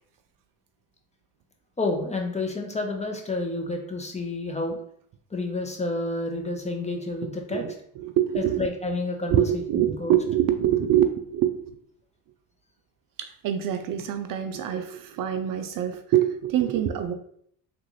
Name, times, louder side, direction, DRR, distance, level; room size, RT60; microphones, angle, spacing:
voice 1, 1.8-4.8 5.3-7.6 8.4-10.1, left 2 dB, 15° left, 2 dB, 0.7 m, -30 dB
voice 2, 8.0-8.7 9.3-11.8 13.2-17.1, right 11 dB, 55° right, 7 dB, 0.4 m, -25 dB
3.6 x 2.5 x 3.0 m, 0.66 s
supercardioid pair, 65°, 42 cm